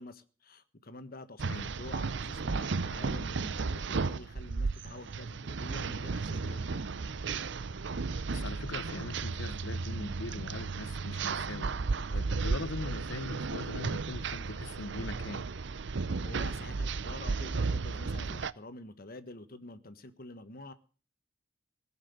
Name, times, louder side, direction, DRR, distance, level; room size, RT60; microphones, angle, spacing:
voice 1, 0.0-6.8 16.2-20.7, left 2 dB, 50° left, 1.4 m, -48 dB
sound 1, 1.4-18.5, right 4 dB, 60° right, 0.6 m, -34 dB
voice 2, 8.3-11.8 12.1-15.5, left 3 dB, 70° left, 0.9 m, -41 dB
18.0 x 7.5 x 9.5 m
head